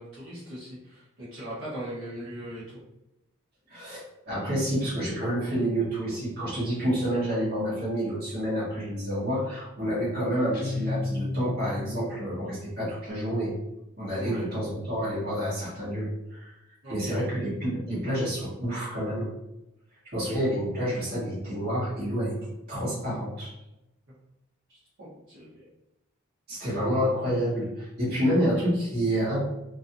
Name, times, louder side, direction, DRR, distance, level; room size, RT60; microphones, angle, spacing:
voice 1, 0.0-2.8 14.2-14.4 16.8-17.1 24.1-24.2 24.7-25.7, right 1 dB, 70° right, -10 dB, 1.3 m, -40 dB
voice 2, 3.7-13.5 14.0-16.5 16.9-19.3 20.1-23.5 26.5-29.4, equal, 50° right, -8 dB, 1.5 m, -28 dB
Guitar, 10.5-12.2, left 2 dB, 50° left, 0.6 m, -32 dB
3.0 x 2.6 x 2.7 m, 0.90 s
head